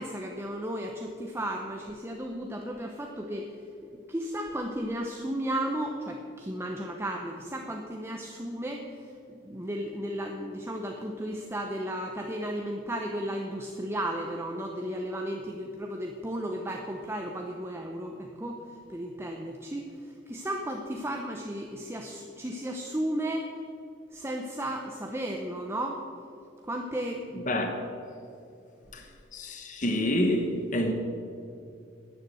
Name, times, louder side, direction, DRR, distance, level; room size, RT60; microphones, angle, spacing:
voice 1, 0.0-3.5 4.1-18.6 18.9-23.5 24.1-26.0 26.6-27.5, right 1 dB, 15° right, 0.8 m, -34 dB
voice 2, 27.5-27.8 28.9-29.0 29.3-30.9, left 1 dB, 45° left, 1.2 m, -27 dB
11.0 x 9.7 x 7.8 m
head